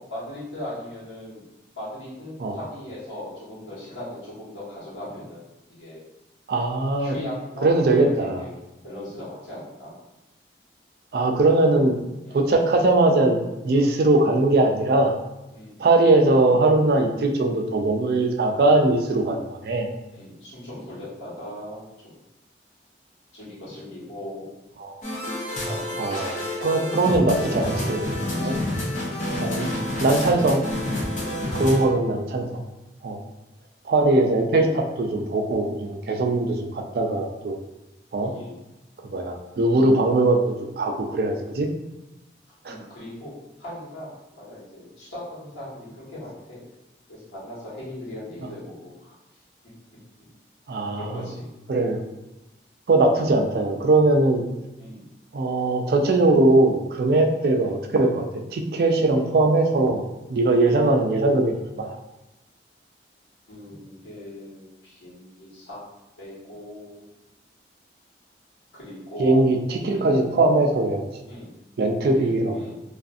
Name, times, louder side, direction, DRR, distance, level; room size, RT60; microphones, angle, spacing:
voice 1, 0.0-1.4 1.7-5.4 5.8-6.0 7.0-9.9 12.2-12.4 15.5-15.8 20.1-22.1 23.3-24.6 25.6-28.0 28.4-28.7 38.2-38.5 42.6-43.3 43.6-46.6 47.1-49.4 50.9-51.5 54.8-55.1 57.0-57.3 60.4-60.6 63.5-65.8 66.2-67.1 68.7-69.4 69.9-70.1 71.3-71.5 72.1-72.8, left 1 dB, 85° left, -9 dB, 1.3 m, -39 dB
voice 2, 6.5-7.1 7.6-8.4 11.1-11.9 12.3-15.1 15.8-19.9 24.8-25.0 26.0-26.3 26.6-28.0 28.4-28.6 29.4-29.7 30.0-30.6 31.5-32.6 33.0-33.2 33.9-37.6 38.1-38.3 39.0-41.7 42.6-42.8 50.7-51.1 51.7-52.0 52.9-54.4 55.3-58.2 58.5-60.0 60.3-62.0 69.2-71.0 71.8-72.6, right 2 dB, 55° right, 3 dB, 0.3 m, -20 dB
sound 1, 25.0-31.8, left 1 dB, 45° left, 0.6 m, -28 dB
2.4 x 2.4 x 2.4 m, 0.99 s
head